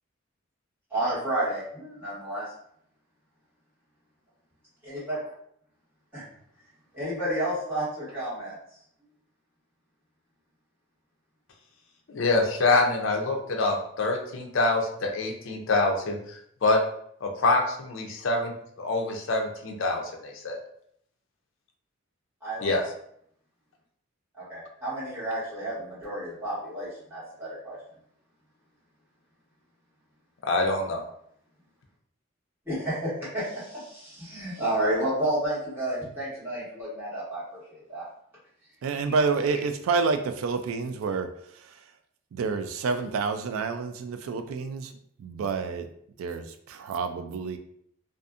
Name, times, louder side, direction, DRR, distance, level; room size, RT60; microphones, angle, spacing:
voice 1, 0.9-2.5 4.8-5.3 6.1-6.2 6.9-8.8 22.4-22.7 24.3-27.8 32.6-38.1 39.1-39.2, right 1 dB, 10° right, -12 dB, 1.5 m, -31 dB
voice 2, 12.1-16.8 17.2-18.5 18.8-20.6 22.6-22.8 30.4-31.0, left 2 dB, 70° left, 2 dB, 0.5 m, -25 dB
voice 3, 38.8-41.8 42.3-44.9 45.2-45.9 46.2-47.6, right 4 dB, 85° right, 8 dB, 0.3 m, -29 dB
2.6 x 2.4 x 2.4 m, 0.69 s
head